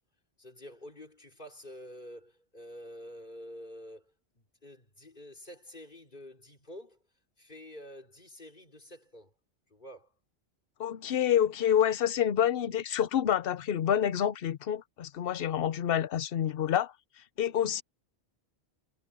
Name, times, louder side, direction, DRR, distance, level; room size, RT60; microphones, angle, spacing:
voice 1, 0.4-7.0 7.4-9.3 9.7-10.1, equal, 45° left, 4.5 m, -48 dB
voice 2, 10.8-16.9 17.4-17.8, left 10 dB, 65° left, 0.9 m, -28 dB
omnidirectional pair, 1.1 m